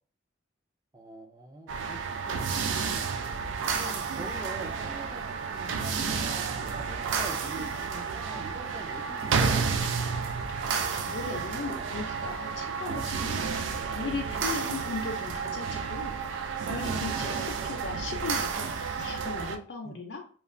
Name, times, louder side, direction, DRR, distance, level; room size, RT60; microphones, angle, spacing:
voice 1, 0.9-3.1 3.7-9.7 16.8-17.3 19.8-20.0, right 2 dB, 20° right, 3 dB, 0.4 m, -44 dB
sound 1, 1.7-19.6, right 5 dB, 85° right, 0.3 m, -31 dB
voice 2, 11.0-13.5 13.9-16.1 16.7-20.2, left 3 dB, 65° left, 1 dB, 0.4 m, -37 dB
3.1 x 2.1 x 2.5 m, 0.43 s
head